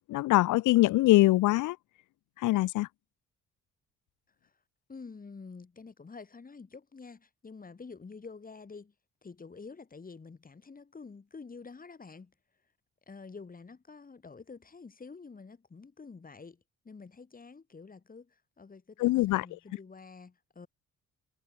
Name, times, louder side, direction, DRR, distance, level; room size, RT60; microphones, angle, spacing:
voice 1, 0.1-1.8 2.4-2.9 19.0-19.5, left 17 dB, 85° left, 0.7 m, -23 dB
voice 2, 4.9-8.9 9.2-12.3 13.1-20.7, left 4 dB, 30° left, 3.2 m, -48 dB
cardioid pair, 90°, 30 cm